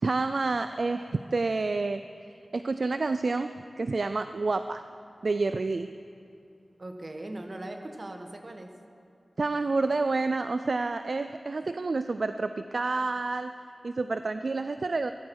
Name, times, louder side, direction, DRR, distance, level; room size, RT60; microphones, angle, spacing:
voice 1, 0.0-2.0 2.3-3.5 3.8-4.8 5.2-5.9 9.4-13.5 13.8-15.1, right 3 dB, 60° right, 10 dB, 0.4 m, -29 dB
voice 2, 6.8-8.8, right 1 dB, 40° right, 5 dB, 1.3 m, -40 dB
17.0 x 14.5 x 4.7 m, 2.6 s
wide cardioid pair, 70°, 0 cm